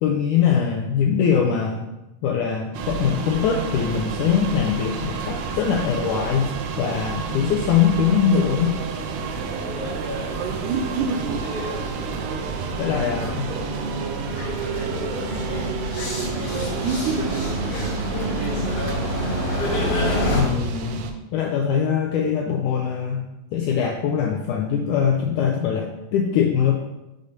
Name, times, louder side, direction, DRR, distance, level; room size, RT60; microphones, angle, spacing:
voice 1, 0.0-1.9 2.2-6.5 6.8-8.7 12.8-13.5 20.3-23.2 23.5-26.7, left 7 dB, 85° left, 2 dB, 1.8 m, -22 dB
sound 1, 2.7-21.1, right 5 dB, 80° right, 1.9 m, -29 dB
sound 2, 3.2-20.4, equal, 65° left, 3.2 m, -30 dB
voice 2, 11.0-12.0 12.8-13.7 14.3-19.4, left 1 dB, 55° right, -9 dB, 0.8 m, -40 dB
6.7 x 4.0 x 5.0 m, 0.97 s
omnidirectional pair, 4.2 m